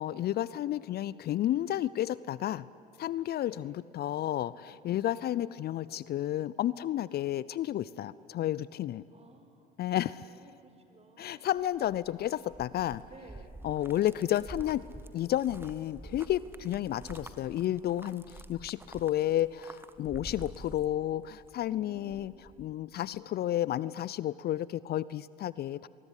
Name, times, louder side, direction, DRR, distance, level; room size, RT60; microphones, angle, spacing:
voice 1, 0.0-2.7 3.0-9.0 9.8-10.3 11.2-13.0 13.6-14.8 15.1-22.3 22.6-25.9, left 12 dB, 50° left, 20 dB, 0.6 m, -31 dB
voice 2, 9.1-9.7 10.2-11.5 13.0-13.6 13.9-14.2 16.8-17.3 21.7-22.5, right 3 dB, 30° right, 7 dB, 4.2 m, -55 dB
sound 1, 11.6-21.5 21.8-22.7, right 2 dB, 10° right, 1.7 m, -48 dB
23.5 x 22.0 x 10.0 m, 2.8 s
hypercardioid pair, 60°, 21 cm